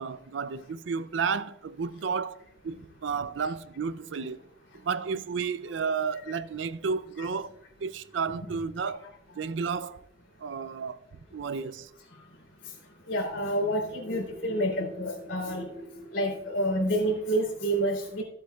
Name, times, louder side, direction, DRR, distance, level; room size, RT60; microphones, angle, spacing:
voice 1, 0.0-4.4 4.7-7.5 7.8-9.1 9.4-10.0 10.4-11.1 11.3-11.9, right 5 dB, 80° right, 0.4 m, -32 dB
voice 2, 13.1-18.2, right 1 dB, 90° left, 3.0 m, -28 dB
15.0 x 8.1 x 2.3 m
head